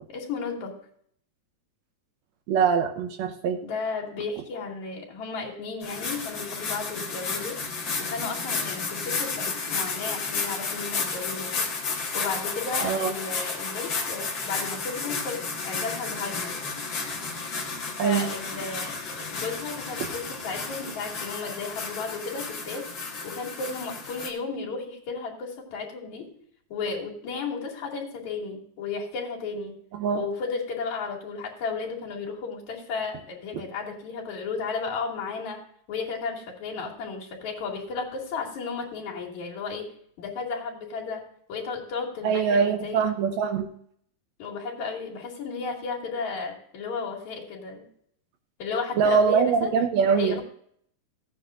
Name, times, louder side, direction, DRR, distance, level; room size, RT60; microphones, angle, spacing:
voice 1, 0.1-0.8 3.6-7.6 8.0-11.7 12.1-16.6 18.0-22.9 23.2-26.3 26.7-29.8 30.2-35.6 35.9-39.9 40.2-41.2 41.5-43.0 44.4-47.9 48.6-49.7 50.1-50.4, left 4 dB, 75° left, -3 dB, 3.9 m, -34 dB
voice 2, 2.5-3.6 12.8-13.1 18.0-18.3 30.0-30.2 42.2-43.7 49.0-50.4, right 6 dB, 75° right, 6 dB, 2.0 m, -23 dB
sound 1, 5.8-24.3, left 4 dB, 45° left, 2.1 m, -32 dB
16.0 x 9.4 x 2.5 m, 0.64 s
omnidirectional pair, 3.3 m